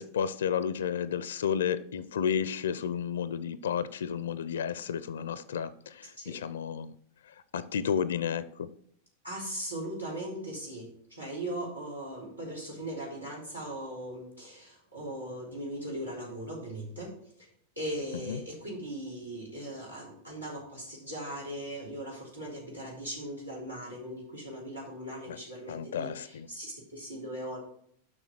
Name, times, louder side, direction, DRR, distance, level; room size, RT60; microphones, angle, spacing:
voice 1, 0.0-6.9 7.5-8.7 18.3-18.4 25.3-25.4 25.7-26.5, left 8 dB, 65° left, 16 dB, 0.4 m, -32 dB
voice 2, 9.2-17.1 17.4-17.5 17.8-27.6, right 1 dB, 85° right, -4 dB, 3.3 m, -39 dB
6.5 x 5.9 x 6.1 m, 0.67 s
figure-of-eight pair, 90°, 0 cm